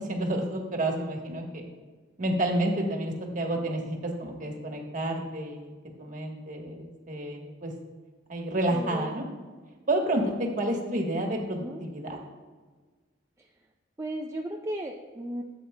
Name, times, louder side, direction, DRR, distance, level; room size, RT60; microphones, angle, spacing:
voice 1, 0.1-1.6 2.2-5.7 6.0-7.7 8.3-9.2 9.9-10.2 10.6-12.1, right 1 dB, 40° right, 2 dB, 1.2 m, -30 dB
voice 2, 8.7-9.2 10.6-10.8 11.5-11.8 14.0-15.4, right 1 dB, 15° right, 1 dB, 0.4 m, -35 dB
12.5 x 7.9 x 2.2 m, 1.4 s
head